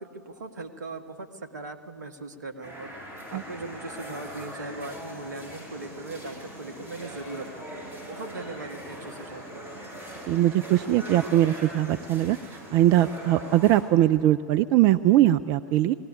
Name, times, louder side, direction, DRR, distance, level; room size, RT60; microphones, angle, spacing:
voice 1, 0.0-2.9 3.3-7.8 8.1-9.4, right 3 dB, 70° right, 7 dB, 1.8 m, -39 dB
sound 1, 2.6-13.8, equal, 20° right, 7.9 m, -41 dB
voice 2, 10.3-16.0, right 13 dB, 40° right, 14 dB, 0.5 m, -21 dB
20.0 x 17.5 x 10.0 m, 2.3 s
figure-of-eight pair, 95°, 10 cm